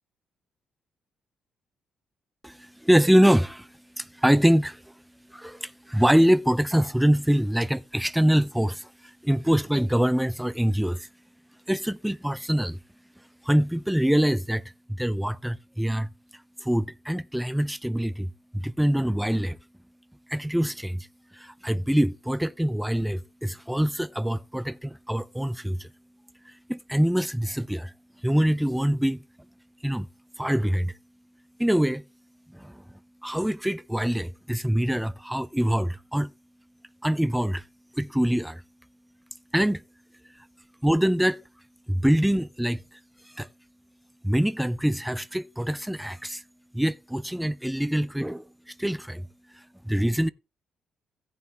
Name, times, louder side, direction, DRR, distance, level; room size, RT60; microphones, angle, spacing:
voice 1, 2.4-3.7 4.0-4.9 5.3-11.1 11.7-12.8 13.4-16.1 16.6-19.6 20.3-21.1 21.3-25.9 26.5-27.9 28.2-29.2 29.8-30.1 30.4-30.9 31.6-32.0 32.5-32.8 33.2-36.3 37.0-37.6 38.0-38.6 39.5-39.8 40.8-41.4 41.9-42.8 43.4-43.5 44.2-46.4 46.7-49.3 49.5-50.3, equal, 5° right, 0.4 m, -24 dB
16.5 x 5.8 x 3.2 m
cardioid pair, 90°, 0 cm